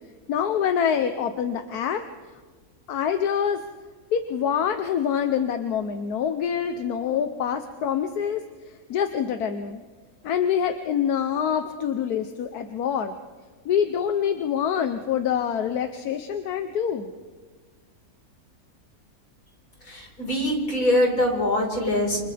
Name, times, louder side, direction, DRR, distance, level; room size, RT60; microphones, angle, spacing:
voice 1, 0.3-2.0 2.9-3.6 4.1-8.4 8.9-9.8 10.2-13.2 13.6-17.1, left 8 dB, 85° left, 7 dB, 1.4 m, -25 dB
voice 2, 19.9-22.2, left 1 dB, 65° left, 0 dB, 5.1 m, -23 dB
28.5 x 28.5 x 3.4 m, 1.4 s
omnidirectional pair, 1.6 m